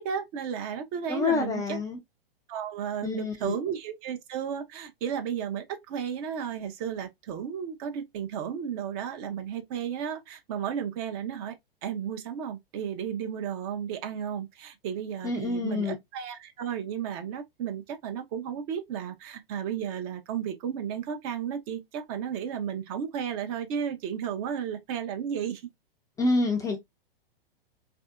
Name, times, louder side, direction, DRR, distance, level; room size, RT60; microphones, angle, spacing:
voice 1, 0.0-1.8 2.5-11.5 11.8-25.6, right 8 dB, 40° right, 0.7 m, -33 dB
voice 2, 1.1-2.0 3.0-3.6 15.2-15.9 26.2-26.8, left 3 dB, 10° left, 0.4 m, -27 dB
3.3 x 2.6 x 2.3 m
figure-of-eight pair, 105°, 29 cm